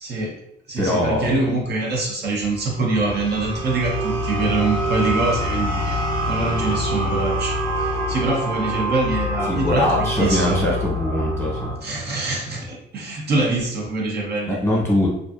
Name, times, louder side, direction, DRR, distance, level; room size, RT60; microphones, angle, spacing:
voice 1, 0.0-0.4 0.7-6.0 6.3-10.6 11.8-14.6, right 2 dB, 55° right, -2 dB, 0.7 m, -24 dB
voice 2, 0.8-1.4 9.5-11.7 14.5-15.1, left 1 dB, 10° left, -4 dB, 1.0 m, -22 dB
sound 1, 2.4-11.8, equal, 85° right, 0.8 m, -25 dB
2.5 x 2.5 x 2.4 m, 0.77 s
cardioid pair, 90°, 20 cm